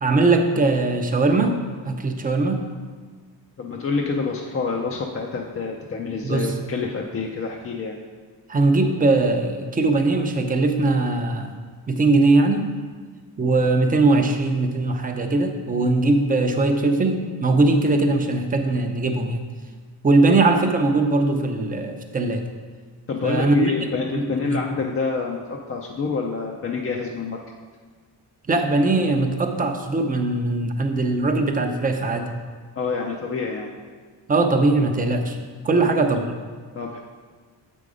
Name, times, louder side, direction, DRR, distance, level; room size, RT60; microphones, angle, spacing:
voice 1, 0.0-1.6 1.8-2.7 6.2-6.5 8.5-11.5 11.9-12.7 13.4-19.4 20.0-22.4 23.2-23.7 24.4-24.6 28.5-32.3 34.3-36.2, right 2 dB, 20° right, 5 dB, 0.5 m, -20 dB
voice 2, 3.6-8.0 23.1-27.4 32.8-33.7 35.7-35.9 36.7-37.0, left 4 dB, 30° left, 0 dB, 0.5 m, -27 dB
7.5 x 5.2 x 4.9 m, 1.5 s
cardioid pair, 150°, 44 cm